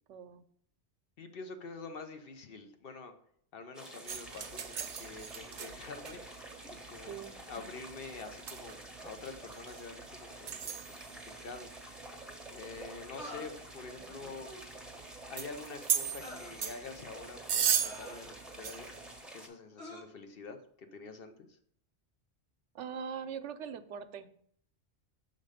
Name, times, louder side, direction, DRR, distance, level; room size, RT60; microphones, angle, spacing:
voice 1, 0.1-0.4 7.1-7.7 14.0-14.3 22.7-24.3, right 7 dB, 85° right, 11 dB, 0.9 m, -42 dB
voice 2, 1.2-3.1 3.5-7.1 7.5-10.8 11.1-11.7 12.5-14.5 15.3-18.9 19.3-21.5, left 4 dB, 60° left, 6 dB, 0.9 m, -47 dB
sound 1, 3.7-19.5, right 1 dB, ahead, 0.6 m, -49 dB
sound 2, 4.1-19.2, right 8 dB, 55° right, 0.5 m, -39 dB
sound 3, 11.3-11.4 13.2-13.5 14.4-14.8 16.2-16.5 17.8-18.6 19.8-20.0, left 1 dB, 75° left, 1.6 m, -47 dB
6.5 x 3.8 x 4.9 m, 0.65 s
omnidirectional pair, 1.2 m